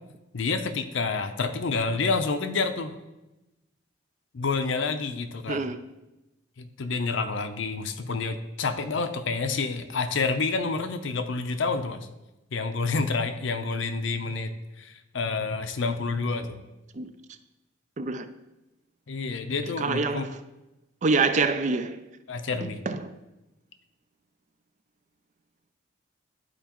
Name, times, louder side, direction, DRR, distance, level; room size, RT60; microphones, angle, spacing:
voice 1, 0.3-2.9 4.3-5.6 6.6-12.1 12.5-14.5 14.8-16.7 19.1-20.3 22.3-22.8, left 4 dB, 75° left, 0.6 m, -28 dB
voice 2, 5.5-5.8 16.9-17.1 18.0-18.3 19.8-20.3 21.0-22.0 22.6-23.1, right 4 dB, 35° right, 0.4 m, -26 dB
11.0 x 4.5 x 3.0 m
head